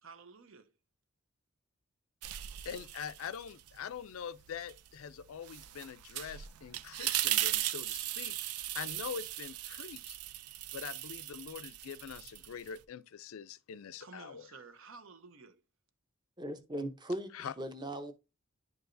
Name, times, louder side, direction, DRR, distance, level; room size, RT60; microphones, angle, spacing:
voice 1, 0.0-0.7 14.0-15.6, right 4 dB, 65° right, 0.7 m, -53 dB
sound 1, 2.2-3.8 4.1-12.8, right 13 dB, 90° right, 0.4 m, -38 dB
voice 2, 2.6-8.4 8.7-10.2 10.7-14.5 17.3-17.5, left 7 dB, 70° left, 0.4 m, -44 dB
voice 3, 16.4-18.1, right 1 dB, 20° right, 0.7 m, -39 dB
10.5 x 4.7 x 2.6 m
head